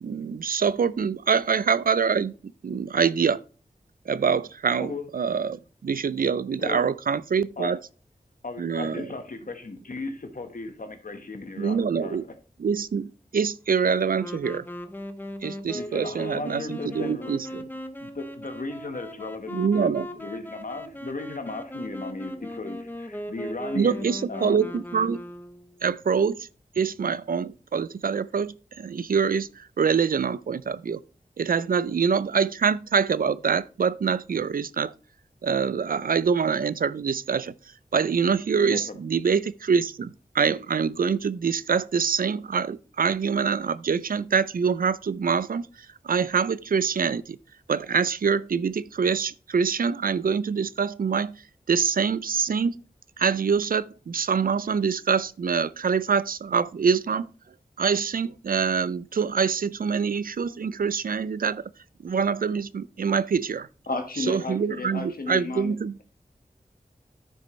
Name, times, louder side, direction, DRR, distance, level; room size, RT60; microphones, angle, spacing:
voice 1, 0.0-3.4 4.1-7.8 8.6-9.1 11.6-12.2 12.6-14.7 15.4-17.6 19.5-20.1 23.8-25.2 25.8-26.5 26.8-31.0 31.4-34.9 35.4-37.5 37.9-47.4 47.7-51.4 51.7-52.8 53.2-57.3 57.8-61.7 62.0-63.7 64.2-66.0, right 6 dB, 70° right, 0.4 m, -25 dB
voice 2, 8.4-12.2 15.7-17.3 18.0-19.9 20.2-24.8 38.6-39.0, left 3 dB, 65° left, 1.5 m, -36 dB
Wind instrument woodwind instrument, 14.1-25.8, left 1 dB, 15° left, 0.8 m, -38 dB
voice 3, 63.9-65.7, left 2 dB, 80° left, 1.6 m, -32 dB
10.0 x 6.4 x 3.2 m
wide cardioid pair, 50°, 15 cm